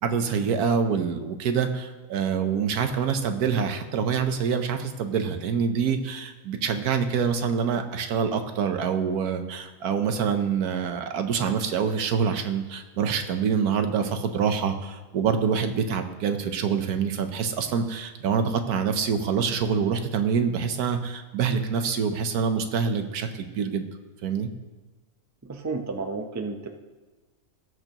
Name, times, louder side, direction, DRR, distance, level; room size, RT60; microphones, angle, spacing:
voice 1, 0.0-23.9 24.2-24.5, right 6 dB, 90° right, 7 dB, 1.4 m, -26 dB
voice 2, 25.4-26.7, right 3 dB, 25° right, 5 dB, 0.4 m, -32 dB
19.0 x 6.8 x 3.0 m, 1.2 s
omnidirectional pair, 1.6 m